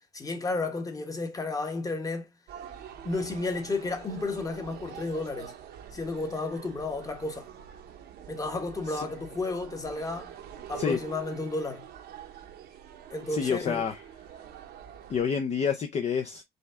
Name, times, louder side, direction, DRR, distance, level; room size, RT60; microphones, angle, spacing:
voice 1, 0.1-2.3 3.0-5.5 5.9-7.5 8.3-10.3 10.7-11.9 13.1-13.8, left 3 dB, 20° left, 1.1 m, -32 dB
sound 1, 2.5-15.2, right 9 dB, 70° right, 0.9 m, -45 dB
voice 2, 13.3-14.0 15.1-16.4, left 6 dB, 40° left, 0.6 m, -28 dB
5.1 x 2.3 x 3.5 m
cardioid pair, 110°, 17 cm